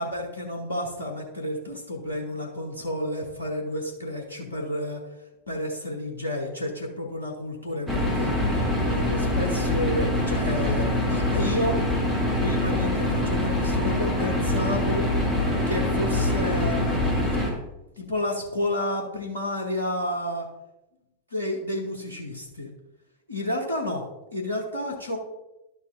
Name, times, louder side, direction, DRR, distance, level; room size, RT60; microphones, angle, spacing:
voice 1, 0.0-5.0 5.5-11.8 12.4-15.1 15.7-17.2 18.0-20.5 21.3-22.7 23.3-24.0 24.3-25.2, left 1 dB, 75° left, 0 dB, 1.1 m, -31 dB
sound 1, 7.9-17.5, left 1 dB, 5° left, 2.2 m, -24 dB
11.5 x 6.7 x 2.6 m, 0.96 s
figure-of-eight pair, 90°, 0 cm